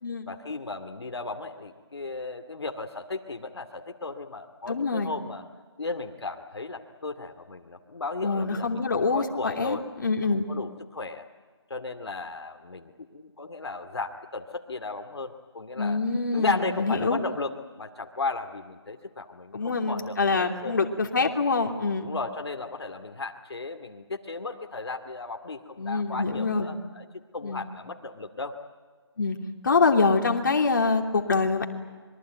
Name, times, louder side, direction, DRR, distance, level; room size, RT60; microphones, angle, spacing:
voice 1, 0.3-5.4 5.8-9.8 10.3-11.2 11.7-16.0 16.3-20.9 22.0-27.1 27.3-28.6, left 3 dB, 70° left, 5 dB, 2.4 m, -35 dB
voice 2, 4.7-5.1 8.2-10.5 15.8-17.2 19.5-22.1 25.8-26.7 27.4-27.6 29.2-29.4 29.6-31.7, left 4 dB, 45° left, 3 dB, 2.8 m, -25 dB
26.0 x 23.0 x 9.2 m, 1.5 s
figure-of-eight pair, 170°, 14 cm